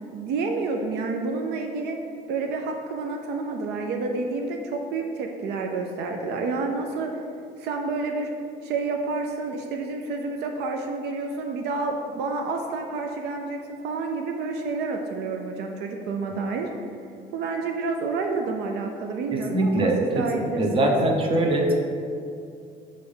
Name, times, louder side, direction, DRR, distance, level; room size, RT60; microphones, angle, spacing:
voice 1, 0.1-2.0 2.3-7.2 7.6-8.3 8.6-13.6 13.8-16.7 17.3-21.0, right 3 dB, 80° right, 3 dB, 0.5 m, -29 dB
voice 2, 19.3-21.7, right 1 dB, 30° right, 1 dB, 0.9 m, -23 dB
5.1 x 3.4 x 5.4 m, 2.4 s
cardioid pair, 110°, 17 cm